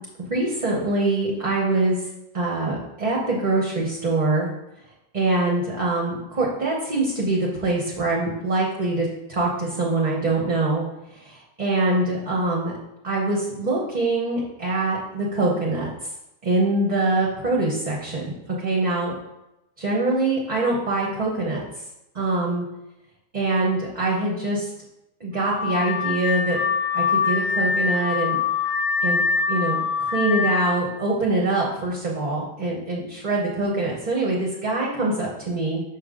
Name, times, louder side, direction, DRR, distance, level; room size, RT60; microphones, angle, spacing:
voice 1, 0.3-2.0 2.3-4.5 5.1-10.8 11.2-12.7 13.0-15.9 16.4-18.2 18.5-19.1 19.8-21.6 22.1-22.6 23.3-24.7 25.2-26.6 26.9-28.4 29.0-29.2 29.5-35.8, right 2 dB, 35° right, -3 dB, 0.9 m, -24 dB
Car / Alarm, 25.4-30.8, left 5 dB, 70° left, 0.9 m, -24 dB
5.9 x 5.2 x 3.7 m, 0.90 s
omnidirectional pair, 1.5 m